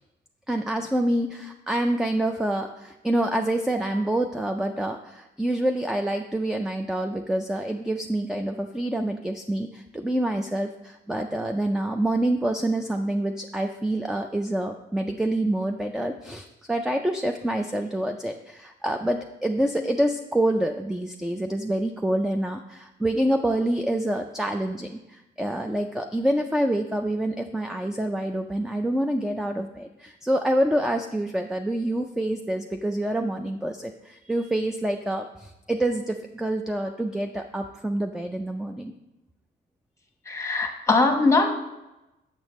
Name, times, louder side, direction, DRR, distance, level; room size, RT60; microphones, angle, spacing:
voice 1, 0.5-38.9, right 1 dB, 5° right, 5 dB, 0.3 m, -27 dB
voice 2, 40.3-41.5, left 3 dB, 15° left, 4 dB, 1.0 m, -21 dB
6.9 x 6.5 x 3.0 m, 0.97 s
cardioid pair, 90°, 20 cm